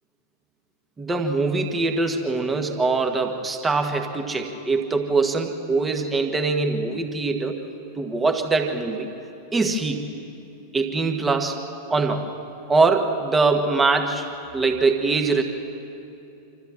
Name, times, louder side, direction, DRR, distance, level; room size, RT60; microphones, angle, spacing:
voice 1, 1.0-7.6 8.0-9.1 9.5-10.1 10.7-11.6 11.9-12.3 12.7-14.3 14.5-15.4, right 3 dB, 15° right, 4 dB, 1.6 m, -23 dB
26.0 x 14.0 x 7.4 m, 2.8 s
figure-of-eight pair, 90°, 0 cm